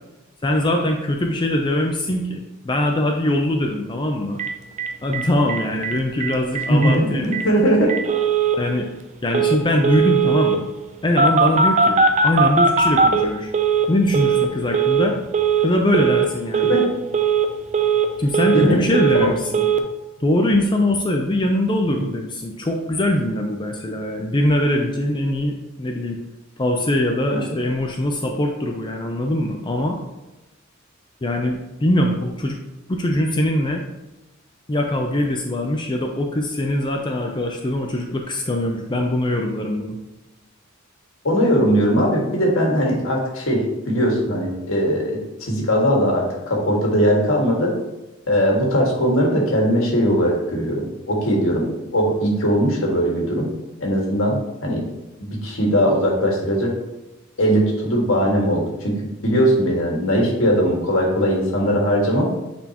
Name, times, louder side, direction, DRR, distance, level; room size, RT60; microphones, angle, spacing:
voice 1, 0.4-4.4 5.0-7.4 8.6-8.9 9.2-10.7 11.0-13.5 13.9-15.2 15.6-16.7 18.2-19.7 20.2-26.2 26.6-30.0 31.2-32.6 32.9-33.8 34.7-40.0, left 1 dB, 20° left, 2 dB, 0.5 m, -22 dB
Telephone, 4.4-4.5 4.8-4.9 5.1-5.2 5.5-5.9 6.2-6.3 6.6-6.9 7.3-7.4 7.9-8.6 9.3-9.6 9.8-10.6 11.2-13.9 14.1-14.5 14.7-15.1 15.3-15.7 15.9-16.3 16.5-16.9 17.1-17.5 17.7-18.7 18.9-19.3 19.5-19.8, right 5 dB, 35° right, 0.5 m, -18 dB
voice 2, 6.7-7.9 16.7-16.8 18.5-18.8 19.1-19.3 41.2-47.7 48.3-53.5 53.8-54.8 55.2-56.7 57.4-62.3, equal, 75° left, -2 dB, 1.8 m, -19 dB
8.9 x 4.3 x 2.9 m, 1.0 s
head